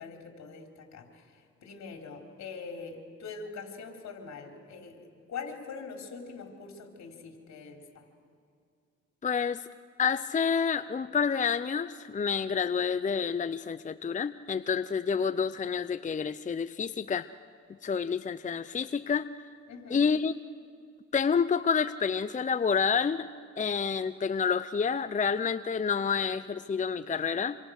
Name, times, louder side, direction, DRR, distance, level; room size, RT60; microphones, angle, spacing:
voice 1, 0.0-8.1 19.7-20.1, left 5 dB, 65° left, 4 dB, 3.9 m, -43 dB
voice 2, 9.2-9.6 10.0-17.3 17.8-19.3 19.9-20.3 21.1-23.3 23.6-27.6, left 6 dB, 25° left, 13 dB, 0.6 m, -28 dB
26.5 x 26.5 x 6.5 m, 2.3 s
cardioid pair, 90°, 30 cm